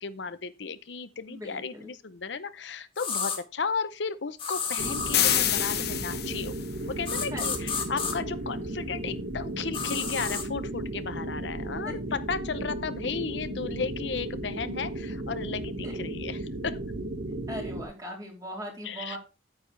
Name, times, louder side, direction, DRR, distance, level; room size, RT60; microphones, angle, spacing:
voice 1, 0.0-6.5 6.9-16.4 16.6-16.8 18.8-19.2, left 5 dB, 90° left, 0.7 m, -34 dB
voice 2, 1.3-1.9 7.3-7.7 11.8-11.9 15.8-15.9 17.5-19.2, equal, 20° right, 3.7 m, -39 dB
sound 1, 3.0-3.4 4.4-5.5 7.1-8.1 9.7-10.5, left 6 dB, 30° left, 2.3 m, -31 dB
sound 2, 4.8-17.8, right 1 dB, 75° right, 1.6 m, -35 dB
sound 3, 5.1-6.7, left 12 dB, 65° left, 1.0 m, -26 dB
9.3 x 8.9 x 3.3 m
head